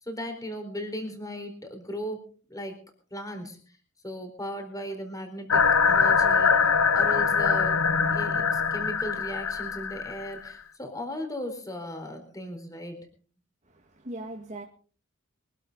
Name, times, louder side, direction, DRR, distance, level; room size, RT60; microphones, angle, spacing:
voice 1, 0.0-2.8 3.1-3.8 4.0-13.1, left 1 dB, 15° left, 4.2 m, -37 dB
sound 1, 5.5-10.5, left 5 dB, 85° left, 1.1 m, -23 dB
voice 2, 13.7-14.6, right 1 dB, 35° right, 2.1 m, -39 dB
24.0 x 12.5 x 4.0 m
head